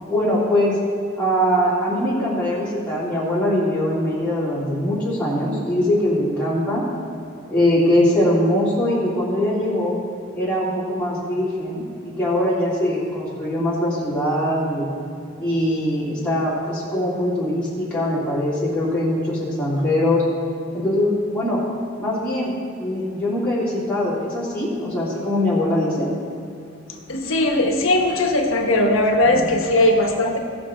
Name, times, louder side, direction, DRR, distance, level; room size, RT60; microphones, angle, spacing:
voice 1, 0.1-0.8 1.2-6.9 7.5-9.9 10.3-14.8 15.4-20.2 20.7-21.6 22.0-26.1, left 1 dB, 5° left, -10 dB, 3.0 m, -22 dB
voice 2, 27.1-30.4, left 1 dB, 90° left, 2 dB, 1.3 m, -19 dB
17.5 x 6.2 x 4.4 m, 2.5 s
head